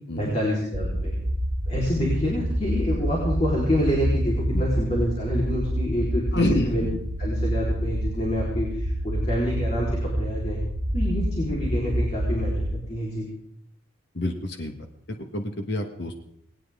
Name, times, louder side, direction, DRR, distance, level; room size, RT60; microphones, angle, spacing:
voice 1, 0.2-1.1 1.7-6.9 7.2-10.6 10.9-13.3, equal, 35° left, -4 dB, 4.1 m, -27 dB
sound 1, 0.7-12.7, equal, 60° right, 3.9 m, -27 dB
voice 2, 6.3-6.7 14.1-14.7 15.1-16.2, left 1 dB, 55° left, 4 dB, 1.6 m, -27 dB
20.0 x 18.5 x 3.7 m, 0.73 s
head